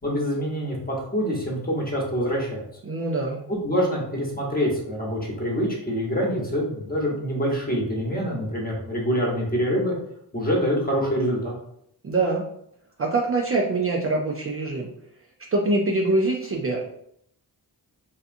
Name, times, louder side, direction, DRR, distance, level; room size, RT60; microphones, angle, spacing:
voice 1, 0.0-2.6 3.5-9.9 10.3-11.5, equal, 20° left, -2 dB, 1.0 m, -25 dB
voice 2, 2.8-3.4 12.0-12.4 13.0-14.9 15.5-16.9, right 2 dB, 35° right, -1 dB, 0.4 m, -24 dB
2.7 x 2.4 x 2.5 m, 0.73 s
cardioid pair, 60°, 42 cm